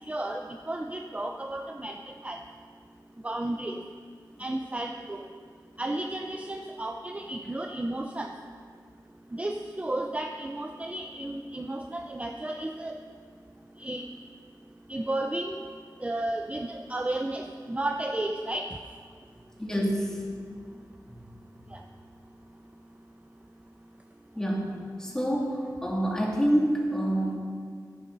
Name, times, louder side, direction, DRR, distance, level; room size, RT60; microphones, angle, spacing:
voice 1, 0.0-2.4 3.2-3.8 4.4-5.2 5.8-8.3 9.3-13.0 13.8-14.1 14.9-15.6 16.0-18.7 21.7-21.8, right 1 dB, 20° right, 4 dB, 0.6 m, -33 dB
voice 2, 19.6-20.2 21.1-21.2 24.3-24.7 25.0-27.4, equal, 10° left, -3 dB, 2.6 m, -27 dB
15.0 x 10.5 x 4.0 m, 2.1 s
wide cardioid pair, 95°, 8 cm